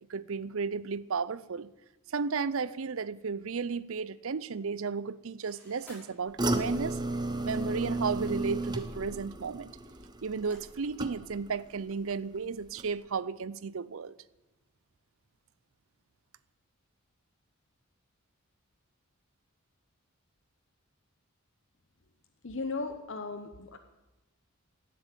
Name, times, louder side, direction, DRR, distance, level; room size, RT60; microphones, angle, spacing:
voice 1, 0.1-1.7 2.1-7.0 7.4-9.7 10.2-14.2, right 5 dB, 65° right, 0.5 m, -34 dB
sound 1, 5.4-6.0 7.3-7.6 8.7-8.8 10.5-10.6, left 1 dB, 5° left, 6.4 m, -53 dB
sound 2, 6.4-11.6 11.9-12.4 12.8-12.9, right 2 dB, 20° right, 0.9 m, -34 dB
voice 2, 22.4-23.8, left 3 dB, 55° left, 0.9 m, -36 dB
17.0 x 7.7 x 9.1 m
head